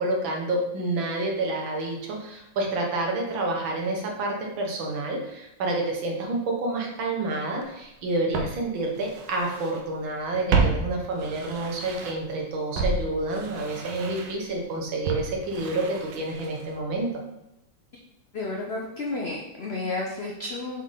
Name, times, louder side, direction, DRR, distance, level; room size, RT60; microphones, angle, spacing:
voice 1, 0.0-17.1, right 2 dB, 85° right, 0 dB, 1.9 m, -29 dB
Walk footsteps, 7.6-7.7 8.3-9.8 10.1-12.3 12.7-16.8 17.1-17.2, right 4 dB, 70° right, 1.3 m, -30 dB
voice 2, 18.3-20.8, left 2 dB, 75° left, -1 dB, 0.5 m, -31 dB
6.9 x 3.7 x 3.8 m, 0.86 s
omnidirectional pair, 2.1 m